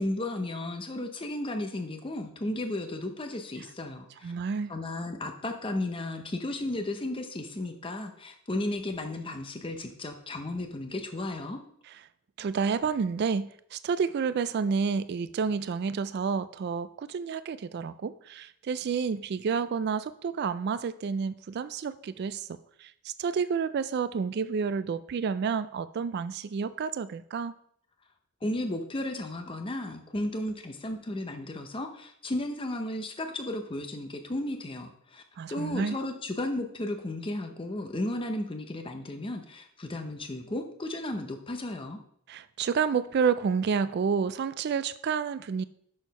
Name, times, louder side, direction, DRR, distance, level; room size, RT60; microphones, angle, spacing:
voice 1, 0.0-4.3 4.7-11.6 28.4-35.2 35.5-42.0, left 1 dB, 25° left, 5 dB, 0.7 m, -34 dB
voice 2, 4.2-4.7 12.4-27.5 35.4-36.0 42.3-45.6, right 6 dB, 45° right, 14 dB, 0.3 m, -30 dB
6.4 x 6.1 x 5.4 m, 0.68 s
head